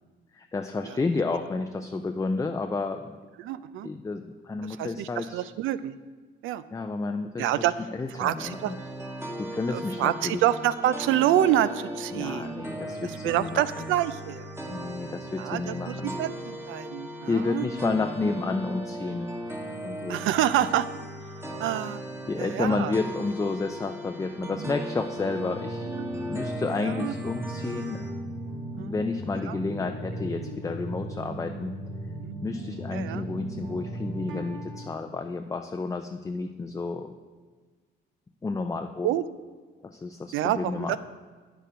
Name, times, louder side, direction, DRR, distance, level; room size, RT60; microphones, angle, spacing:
voice 1, 0.3-3.1 3.8-5.5 6.7-7.6 7.9-8.8 9.4-10.4 12.1-13.9 14.7-16.2 17.3-19.3 19.8-20.3 22.3-28.0 28.8-31.7 32.4-37.1 38.4-39.1 39.8-41.0, left 3 dB, 15° left, 6 dB, 0.4 m, -31 dB
voice 2, 3.4-3.9 4.8-6.0 6.4-6.6 7.4-7.7 8.2-8.7 9.7-12.6 13.0-14.4 15.4-15.9 16.2-17.7 20.1-20.9 21.6-22.0 22.4-22.9 24.6-24.7 26.0-26.1 26.8-27.1 28.8-28.9 29.5-29.6 32.2-32.3 32.9-33.2 39.0-39.2 40.3-41.0, right 12 dB, 85° right, 15 dB, 0.4 m, -27 dB
sound 1, 8.4-28.1, right 1 dB, 10° right, 1.2 m, -38 dB
sound 2, 25.1-34.9, right 1 dB, 70° right, 2.0 m, -36 dB
9.0 x 6.8 x 5.0 m, 1.4 s
cardioid pair, 90°, 20 cm